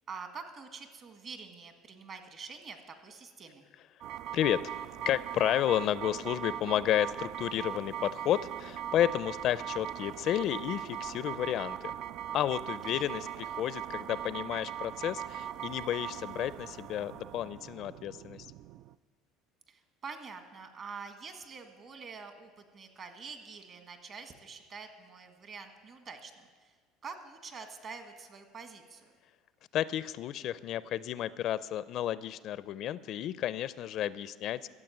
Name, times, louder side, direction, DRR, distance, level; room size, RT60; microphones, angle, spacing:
voice 1, 0.1-3.6 12.9-13.1 19.7-26.7 27.0-29.1, right 5 dB, 40° right, 7 dB, 1.7 m, -46 dB
sound 1, 4.0-18.9, right 11 dB, 60° right, 0.3 m, -40 dB
voice 2, 5.0-11.9 12.3-18.5 29.7-34.7, left 11 dB, 55° left, 17 dB, 0.4 m, -32 dB
13.5 x 7.6 x 9.0 m, 1.5 s
supercardioid pair, 110°, 0 cm